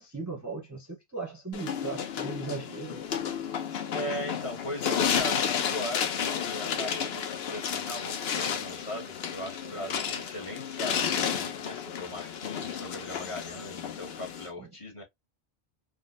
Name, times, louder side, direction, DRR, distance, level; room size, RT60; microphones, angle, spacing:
voice 1, 0.0-3.0 14.6-14.7, right 4 dB, 20° right, 0.6 m, -38 dB
sound 1, 1.5-14.5, left 8 dB, 75° left, 0.8 m, -32 dB
voice 2, 3.9-15.0, left 1 dB, 35° left, 0.9 m, -38 dB
3.7 x 2.2 x 2.5 m
omnidirectional pair, 1.1 m